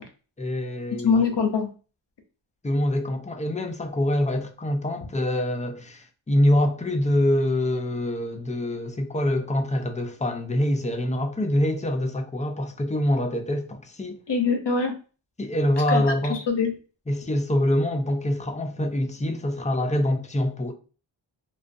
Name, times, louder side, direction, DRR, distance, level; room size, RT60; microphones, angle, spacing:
voice 1, 0.4-1.2 2.6-14.2 15.4-16.4 17.1-20.7, left 1 dB, 15° left, 0.4 m, -25 dB
voice 2, 1.0-1.7 14.3-14.9 15.9-16.7, left 5 dB, 60° left, 0.6 m, -23 dB
2.4 x 2.3 x 2.5 m
wide cardioid pair, 45°, 48 cm